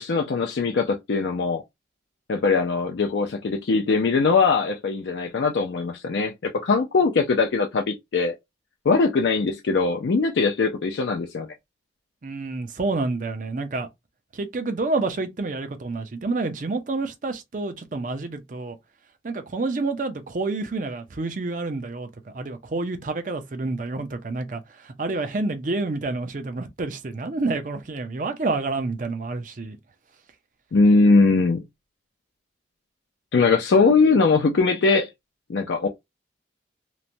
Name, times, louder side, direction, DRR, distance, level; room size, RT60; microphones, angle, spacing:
voice 1, 0.0-1.6 2.3-8.3 8.9-11.5 30.7-31.6 33.3-35.1 35.5-35.9, left 4 dB, 70° left, 0.4 m, -21 dB
voice 2, 12.2-13.9 14.3-18.8 19.2-29.8, right 3 dB, 45° right, 0.5 m, -28 dB
3.1 x 2.1 x 2.6 m
head